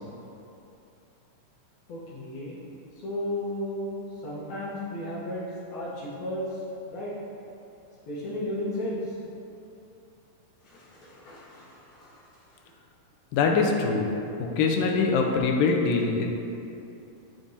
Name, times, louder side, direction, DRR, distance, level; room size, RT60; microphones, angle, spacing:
voice 1, 1.9-2.6 3.0-3.9 4.2-5.4 5.7-6.6 6.9-7.1 8.1-9.1 10.6-12.2, left 1 dB, 70° left, -7 dB, 2.1 m, -34 dB
voice 2, 13.3-14.1 14.4-16.3, left 4 dB, 90° left, 2 dB, 2.3 m, -23 dB
10.0 x 3.6 x 2.6 m, 2.8 s
omnidirectional pair, 3.9 m